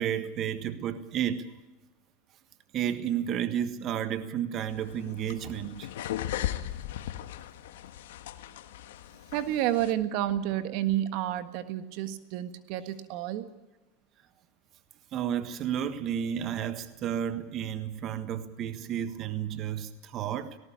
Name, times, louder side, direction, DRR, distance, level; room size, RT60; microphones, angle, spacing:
voice 1, 0.0-1.5 2.7-5.9 15.1-20.6, right 9 dB, 40° right, 10 dB, 1.5 m, -32 dB
sound 1, 4.7-9.9, left 12 dB, 85° left, 1.5 m, -37 dB
voice 2, 9.3-13.5, right 12 dB, 60° right, 10 dB, 1.6 m, -30 dB
18.5 x 18.5 x 8.6 m, 1.0 s
supercardioid pair, 125°, 0 cm